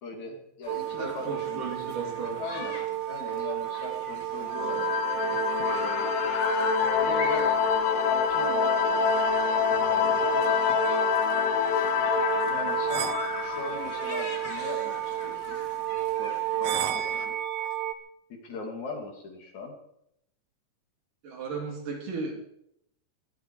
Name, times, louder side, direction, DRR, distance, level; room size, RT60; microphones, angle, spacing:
voice 1, 0.0-1.9 2.4-2.8 3.1-4.9 5.6-6.2 6.9-7.6 7.9-9.3 9.9-10.3 12.5-13.1 13.4-15.6 16.2-17.3 18.3-19.7, left 3 dB, 60° left, 2 dB, 3.8 m, -39 dB
sound 1, 0.6-17.3, left 3 dB, 30° left, 2.0 m, -42 dB
sound 2, 0.7-17.9, right 14 dB, 90° right, 1.3 m, -31 dB
voice 2, 1.0-2.4 12.5-12.6 21.2-22.3, right 4 dB, 70° right, 1 dB, 4.5 m, -35 dB
sound 3, 4.5-14.9, left 12 dB, 80° left, 2.2 m, -27 dB
21.5 x 12.5 x 4.7 m, 0.75 s
omnidirectional pair, 3.9 m